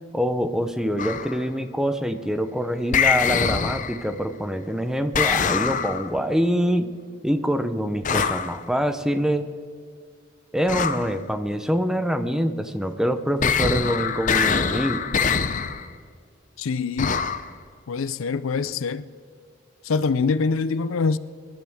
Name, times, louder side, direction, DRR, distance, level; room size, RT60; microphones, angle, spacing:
voice 1, 0.1-6.9 7.2-9.5 10.5-15.1, equal, 5° right, 0.7 m, -25 dB
sound 1, 1.0-1.4 2.9-4.1 5.1-6.2 8.0-8.6 10.7-11.1 13.4-15.9 17.0-17.5, left 6 dB, 40° left, 0.6 m, -24 dB
voice 2, 16.6-17.2 17.9-19.1 19.8-21.2, left 4 dB, 90° left, 0.5 m, -24 dB
23.5 x 12.0 x 3.6 m
head